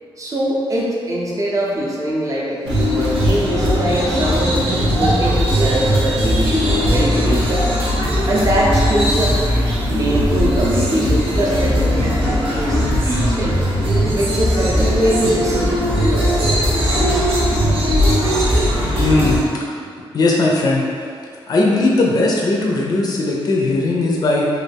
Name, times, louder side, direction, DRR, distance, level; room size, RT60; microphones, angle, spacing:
voice 1, 0.2-4.6 5.0-7.6 8.3-9.3 9.9-13.5 14.1-16.4, right 1 dB, 35° right, -4 dB, 0.6 m, -22 dB
sound 1, 2.6-19.4, equal, 85° right, 0.9 m, -18 dB
voice 2, 19.0-19.7 20.1-21.1 21.5-24.5, left 2 dB, 45° left, -2 dB, 0.4 m, -18 dB
3.1 x 2.3 x 3.3 m, 2.3 s
wide cardioid pair, 145°, 10 cm